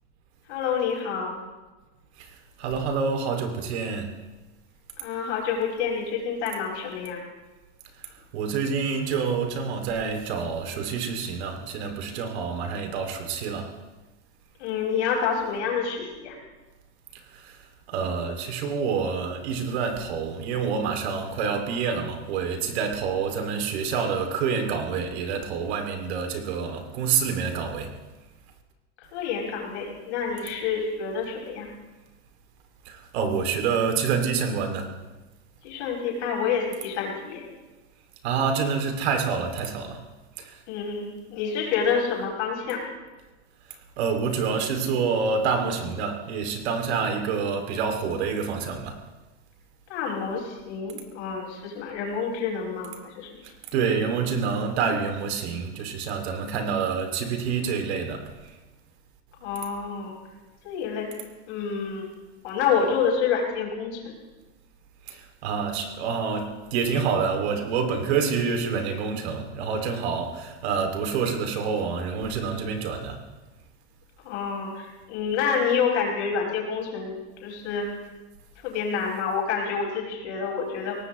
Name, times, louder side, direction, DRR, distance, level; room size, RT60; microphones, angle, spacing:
voice 1, 0.5-1.4 5.0-7.2 14.6-16.4 29.1-31.7 35.6-37.5 40.7-42.8 49.9-53.4 59.4-60.2 60.6-61.1 61.5-62.1 62.4-64.1 74.2-77.1 77.4-77.9 78.6-81.0, left 6 dB, 80° left, -1 dB, 5.4 m, -28 dB
voice 2, 2.6-4.1 8.3-13.7 17.3-17.6 17.9-27.9 32.9-34.9 38.2-40.0 40.4-40.6 44.0-49.0 53.7-58.2 65.1-73.2, right 5 dB, 70° right, 5 dB, 2.6 m, -27 dB
22.5 x 18.0 x 3.1 m, 1.1 s
supercardioid pair, 165°, 34 cm